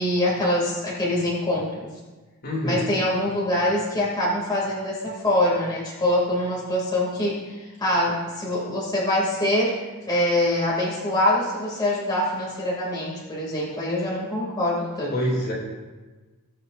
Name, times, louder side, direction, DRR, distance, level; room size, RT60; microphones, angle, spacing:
voice 1, 0.0-1.9 2.6-9.7 10.1-15.2, left 1 dB, 20° left, -6 dB, 2.6 m, -24 dB
voice 2, 2.4-2.9 15.1-15.5, equal, 45° left, -3 dB, 2.8 m, -25 dB
21.0 x 7.6 x 2.6 m, 1.3 s
head